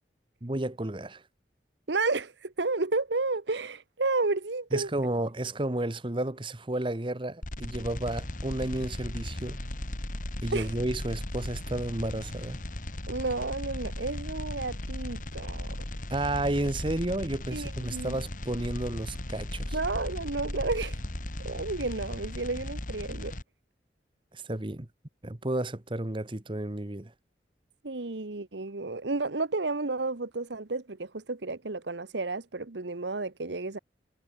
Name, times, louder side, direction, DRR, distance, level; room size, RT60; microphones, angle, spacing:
voice 1, 0.4-1.2 4.7-9.6 10.4-12.6 16.1-19.8 24.3-24.9 25.2-27.1, right 1 dB, 30° right, 1.1 m, -32 dB
voice 2, 1.9-4.9 10.5-10.7 13.1-15.8 17.5-18.1 19.7-21.0 21.4-23.4 27.8-33.8, right 3 dB, 75° right, 1.2 m, -31 dB
sound 1, 7.4-23.4, left 1 dB, 45° left, 2.5 m, -37 dB
head